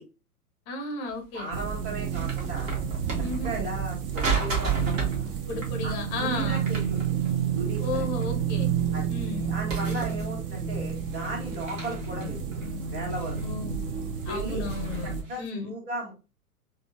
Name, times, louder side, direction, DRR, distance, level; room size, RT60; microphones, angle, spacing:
voice 1, 0.7-1.5 3.2-3.5 5.5-6.7 7.8-8.7 9.1-9.5 13.4-13.7 14.3-15.7, left 3 dB, 25° left, 0.5 m, -34 dB
sound 1, 1.1-1.2 1.5-3.7 4.1-5.3 5.5-5.7 6.4-7.9 8.2-9.4 9.7-10.6 10.9-13.5 14.0-15.4, right 5 dB, 60° right, 1.2 m, -34 dB
voice 2, 1.3-2.8 3.4-5.3 5.8-7.1 7.5-8.1 8.9-9.1 9.5-12.6 12.9-13.4 14.2-14.6 15.0-16.1, right 2 dB, 25° right, 1.4 m, -36 dB
sound 2, 1.5-15.2, right 8 dB, 40° right, 0.5 m, -30 dB
3.6 x 2.1 x 2.2 m
figure-of-eight pair, 110°, 46 cm